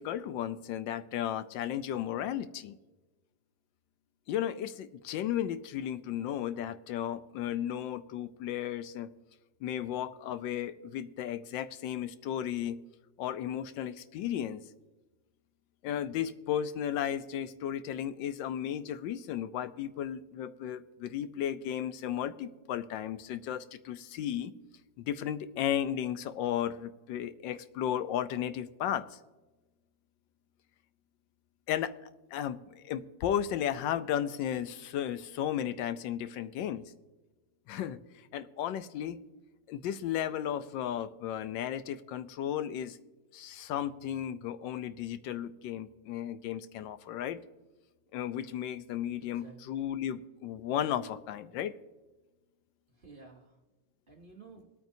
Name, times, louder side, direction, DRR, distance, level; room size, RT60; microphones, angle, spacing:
voice 1, 0.0-2.8 4.3-9.1 9.6-12.8 13.2-14.6 15.8-24.5 25.0-29.2 31.7-31.9 32.3-36.8 37.7-38.0 38.3-39.2 39.7-43.0 43.3-47.4 48.1-51.8, left 10 dB, 85° left, 12 dB, 1.3 m, -34 dB
voice 2, 49.2-49.9 52.9-53.6 54.1-54.7, right 4 dB, 35° right, 1 dB, 1.1 m, -53 dB
22.0 x 9.1 x 2.7 m, 1.2 s
omnidirectional pair, 2.0 m